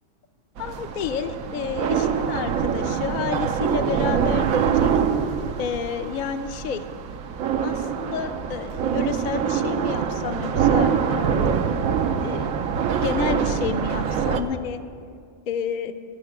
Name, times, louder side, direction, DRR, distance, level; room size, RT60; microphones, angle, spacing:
voice 1, 0.6-4.9 5.6-6.8 7.6-11.5 12.2-12.5 13.0-14.8 15.5-15.9, left 7 dB, 55° left, 9 dB, 0.6 m, -30 dB
sound 1, 0.6-14.4, right 7 dB, 90° right, 1.1 m, -24 dB
13.0 x 6.6 x 8.2 m, 2.2 s
omnidirectional pair, 1.4 m